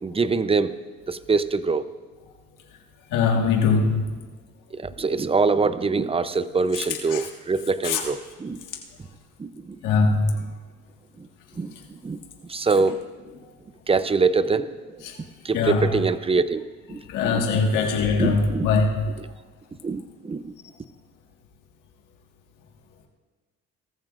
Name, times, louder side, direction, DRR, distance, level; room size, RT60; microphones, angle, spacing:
voice 1, 0.0-0.7 1.1-1.9 4.7-8.6 9.4-9.8 11.2-11.3 11.6-12.2 12.5-13.0 13.9-15.0 15.4-16.6 16.9-17.6 18.2-18.8 19.8-20.5, right 4 dB, 20° right, 13 dB, 0.6 m, -24 dB
voice 2, 3.1-4.1 6.7-6.8 7.1-7.2 7.8-8.0 9.8-10.4 15.0-15.2 15.5-16.0 17.1-19.1, left 4 dB, 80° left, 1 dB, 1.7 m, -22 dB
19.5 x 14.0 x 2.5 m, 1.4 s
supercardioid pair, 80°, 31 cm